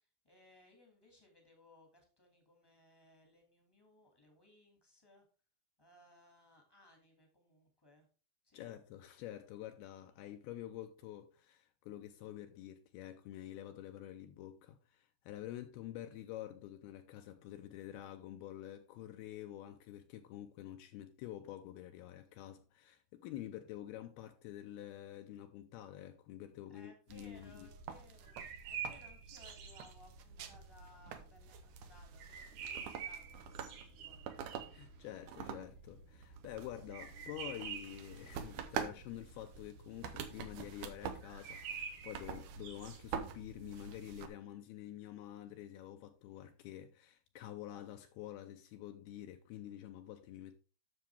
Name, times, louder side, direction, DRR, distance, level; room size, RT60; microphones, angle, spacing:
voice 1, 0.2-5.2 5.8-8.1 8.4-8.7 26.7-34.5 34.9-35.0, left 1 dB, 15° left, 0.9 m, -64 dB
voice 2, 8.5-27.7 34.7-50.6, left 12 dB, 80° left, 2.4 m, -48 dB
sound 1, 27.1-44.3, right 7 dB, 90° right, 1.7 m, -47 dB
sound 2, 28.2-29.9 32.2-34.8 36.9-38.1 41.2-43.0, right 7 dB, 70° right, 3.5 m, -46 dB
9.9 x 6.8 x 3.4 m
omnidirectional pair, 4.9 m